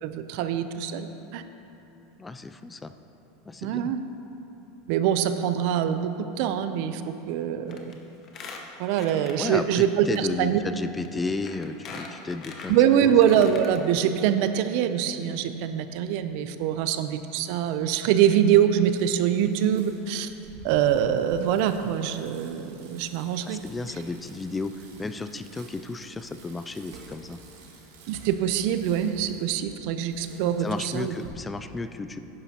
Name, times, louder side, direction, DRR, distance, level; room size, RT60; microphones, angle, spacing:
voice 1, 0.0-1.4 3.6-4.0 4.9-8.0 8.8-10.6 12.7-20.3 20.6-23.6 28.1-31.1, right 9 dB, 60° right, 10 dB, 0.5 m, -24 dB
voice 2, 2.2-2.9 3.5-3.9 9.4-13.2 23.5-27.4 30.6-32.2, left 3 dB, 15° left, 10 dB, 0.3 m, -33 dB
Squeak, 7.7-7.9 8.2-9.8 10.1-10.2 11.0-11.1 11.4-13.8 14.2-14.3 14.5-14.6, left 4 dB, 35° left, 1.0 m, -42 dB
Bicycle, 18.9-31.3, right 3 dB, 80° right, 1.6 m, -50 dB
11.0 x 10.0 x 2.9 m, 3.0 s
supercardioid pair, 130°, 0 cm